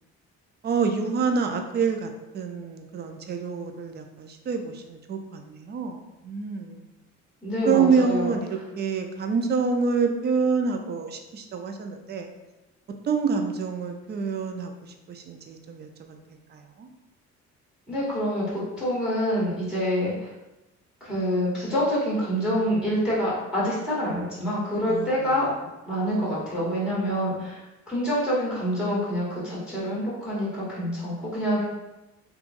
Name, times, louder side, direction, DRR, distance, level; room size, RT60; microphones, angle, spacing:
voice 1, 0.6-6.8 7.7-12.3 13.0-16.2 16.5-16.9 24.9-25.1, right 5 dB, 35° right, 5 dB, 0.4 m, -27 dB
voice 2, 7.4-8.4 17.9-20.3 21.0-25.5 25.9-27.6 27.9-31.7, equal, 5° right, -7 dB, 1.2 m, -26 dB
3.0 x 2.3 x 2.4 m, 1.0 s
cardioid pair, 90°, 30 cm